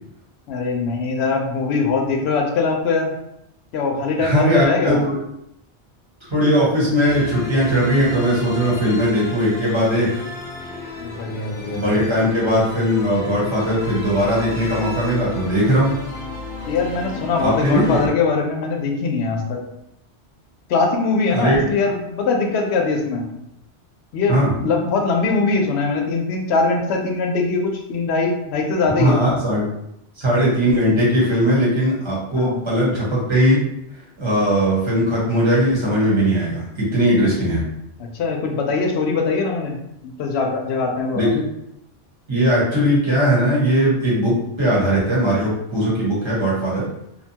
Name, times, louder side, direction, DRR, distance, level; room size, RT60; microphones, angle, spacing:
voice 1, 0.5-3.1 3.7-5.0 11.0-11.9 16.7-19.6 20.7-23.3 24.1-29.2 32.3-32.6 38.0-39.8 40.0-41.3, left 4 dB, 75° left, 2 dB, 0.8 m, -22 dB
voice 2, 4.2-5.2 6.2-10.1 11.7-15.9 17.4-18.0 21.3-21.7 24.3-24.5 28.9-29.6 30.2-33.6 34.2-37.6 41.1-41.4 42.3-46.9, equal, 25° right, -7 dB, 1.0 m, -19 dB
sound 1, 7.0-18.1, left 2 dB, 35° left, 0.7 m, -33 dB
2.7 x 2.2 x 2.7 m, 0.81 s
omnidirectional pair, 1.1 m